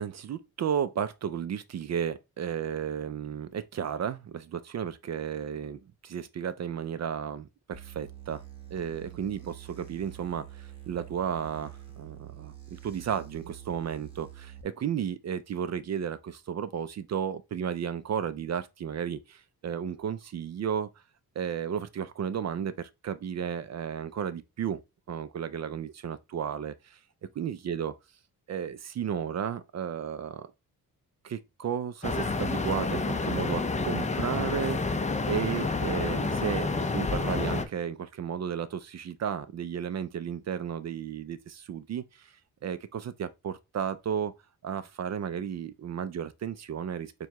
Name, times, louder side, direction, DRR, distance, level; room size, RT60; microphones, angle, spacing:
voice 1, 0.0-8.4 8.7-12.5 12.8-20.9 21.4-24.8 25.1-27.0 27.4-27.9 28.5-30.5 31.2-34.8 35.3-42.3 42.6-44.3 44.6-47.1, right 8 dB, 45° right, 0.4 m, -33 dB
sound 1, 7.7-14.6, right 12 dB, 15° right, 1.2 m, -46 dB
sound 2, 32.0-37.6, left 3 dB, 20° left, 0.5 m, -29 dB
6.4 x 2.3 x 2.9 m
cardioid pair, 100°, 37 cm